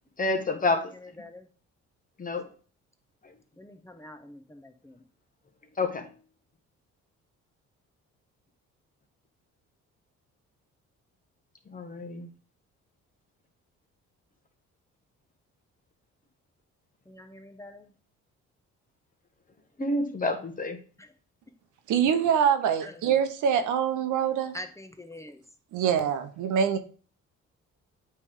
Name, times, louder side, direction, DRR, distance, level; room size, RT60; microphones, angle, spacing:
voice 1, 0.2-0.9 2.2-2.5 5.8-6.1 11.7-12.3 19.8-20.8, left 2 dB, 25° left, 1.3 m, -28 dB
voice 2, 3.6-5.0 17.1-17.9 21.0-21.1 22.8-23.1 24.5-25.4, left 1 dB, 10° left, 0.8 m, -45 dB
voice 3, 21.9-24.5 25.7-26.8, right 8 dB, 85° right, 0.9 m, -24 dB
8.3 x 3.4 x 3.6 m
cardioid pair, 90°, 30 cm